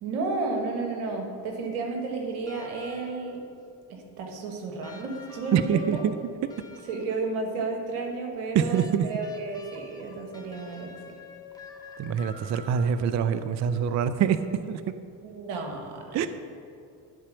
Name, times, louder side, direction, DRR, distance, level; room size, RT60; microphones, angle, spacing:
voice 1, 0.0-3.4 3.9-6.0 6.9-11.0 15.2-16.3, right 3 dB, 80° right, 2 dB, 1.5 m, -32 dB
sound 1, 2.5-3.4 4.8-7.4 8.7-13.2 14.5-14.6, left 3 dB, 10° left, 1.3 m, -48 dB
voice 2, 5.5-6.2 8.5-9.1 12.0-14.4 14.7-14.8 16.1-16.3, right 8 dB, 35° right, 12 dB, 0.4 m, -25 dB
10.5 x 4.2 x 6.1 m, 2.4 s
hypercardioid pair, 60°, 49 cm